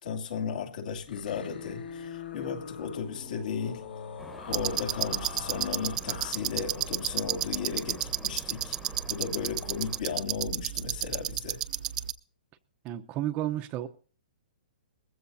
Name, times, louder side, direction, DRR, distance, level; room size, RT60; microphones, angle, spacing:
voice 1, 0.0-3.8 4.4-8.8 9.1-11.6, left 6 dB, 60° left, 2.7 m, -35 dB
sound 1, 0.9-6.3, left 6 dB, 85° left, 4.4 m, -42 dB
sound 2, 4.2-10.0, left 1 dB, 5° left, 1.3 m, -48 dB
sound 3, 4.5-12.1, right 12 dB, 50° right, 0.9 m, -32 dB
voice 2, 12.8-13.9, right 13 dB, 25° right, 0.9 m, -32 dB
20.5 x 15.5 x 2.8 m
hypercardioid pair, 155°, 5 cm